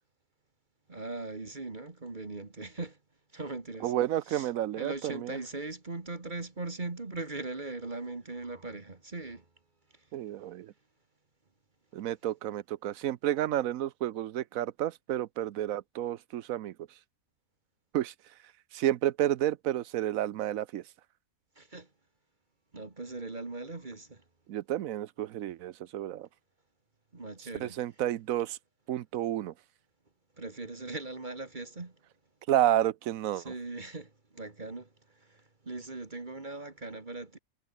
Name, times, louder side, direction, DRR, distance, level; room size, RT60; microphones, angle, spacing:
voice 1, 0.9-3.0 3.3-3.9 4.3-9.5 9.9-10.0 21.6-21.9 22.7-24.2 27.1-27.8 30.4-32.0 33.3-37.4, right 3 dB, 35° right, 2.0 m, -40 dB
voice 2, 3.8-5.4 10.1-10.7 11.9-16.7 17.9-18.1 18.7-20.8 24.5-26.3 27.6-28.6 28.9-29.5 32.5-33.5, right 12 dB, 75° right, 1.1 m, -30 dB
omnidirectional pair, 1.5 m